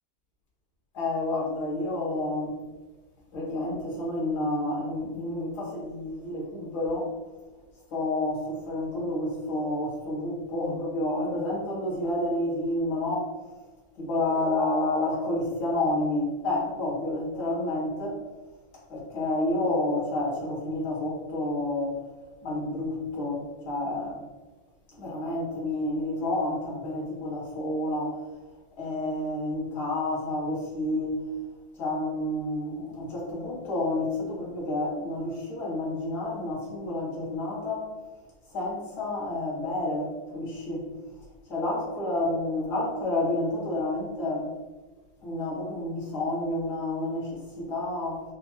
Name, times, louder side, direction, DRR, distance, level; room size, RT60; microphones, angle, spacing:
voice 1, 0.9-2.6 3.3-7.1 7.9-13.3 14.0-18.2 18.9-22.0 22.4-24.2 24.9-28.2 28.8-31.3 31.8-37.9 38.5-40.9 41.5-44.5 45.2-48.2, left 1 dB, 85° left, -5 dB, 2.0 m, -29 dB
5.1 x 2.3 x 2.8 m, 1.3 s
omnidirectional pair, 1.7 m